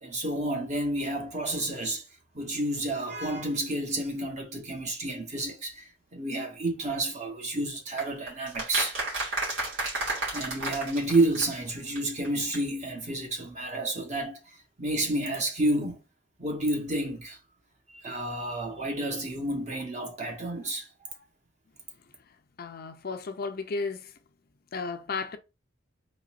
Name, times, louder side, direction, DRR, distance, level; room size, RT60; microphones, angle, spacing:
voice 1, 0.0-2.0 2.3-9.0 10.3-14.4 14.8-16.0 16.4-17.4 18.0-20.9, right 1 dB, 40° right, 1.2 m, -30 dB
sound 1, 8.0-11.7 12.0-12.1 12.2-12.3 12.5-12.6, right 2 dB, 90° right, 2.4 m, -32 dB
voice 2, 22.6-24.1 24.7-25.4, left 4 dB, 50° left, 0.5 m, -34 dB
4.0 x 3.6 x 2.5 m
head